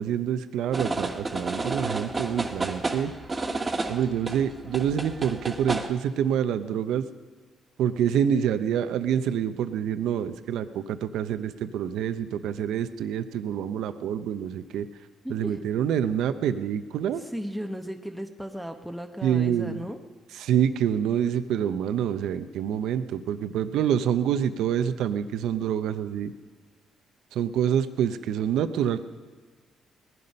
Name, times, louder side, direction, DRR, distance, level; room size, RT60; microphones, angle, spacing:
voice 1, 0.0-3.1 3.9-7.1 7.8-14.9 15.3-17.2 19.2-19.8 20.3-26.3 27.3-29.0, right 9 dB, 85° right, 11 dB, 0.7 m, -27 dB
sound 1, 0.7-5.9, right 3 dB, 25° right, 1.5 m, -31 dB
voice 2, 15.2-15.6 17.2-20.0, equal, 5° right, 4 dB, 1.0 m, -35 dB
19.0 x 11.0 x 5.4 m, 1.4 s
cardioid pair, 90°, 0 cm